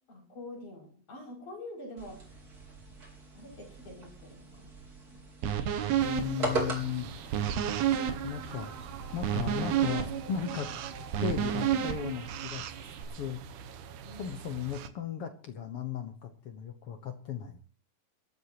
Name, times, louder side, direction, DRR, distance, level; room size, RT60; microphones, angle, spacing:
voice 1, 0.1-2.4 3.3-4.8 8.1-8.2 14.0-14.3, left 1 dB, 50° left, -2 dB, 7.6 m, -46 dB
sound 1, 2.0-11.2, right 3 dB, 25° right, 4.1 m, -41 dB
sound 2, 5.4-13.0, right 9 dB, 85° right, 3.4 m, -31 dB
voice 2, 6.0-7.1 8.2-8.8 9.1-10.7 11.2-12.9 13.2-13.4 14.1-17.6, left 9 dB, 80° left, 6 dB, 1.2 m, -36 dB
sound 3, 6.0-14.9, right 8 dB, 70° right, 2.3 m, -44 dB
23.0 x 13.0 x 2.9 m, 0.41 s
omnidirectional pair, 4.3 m